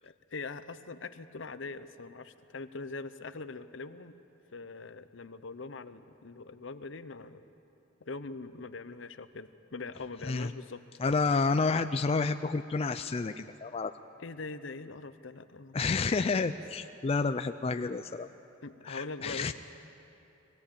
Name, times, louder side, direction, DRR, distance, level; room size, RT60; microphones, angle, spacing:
voice 1, 0.0-4.1 4.5-7.4 8.0-10.8 14.2-15.8 16.2-16.5 18.6-19.5, left 3 dB, 70° left, 12 dB, 0.8 m, -42 dB
voice 2, 11.0-13.9 15.7-18.3 18.8-19.5, left 4 dB, 30° left, 8 dB, 0.4 m, -30 dB
22.0 x 17.0 x 8.6 m, 2.9 s
head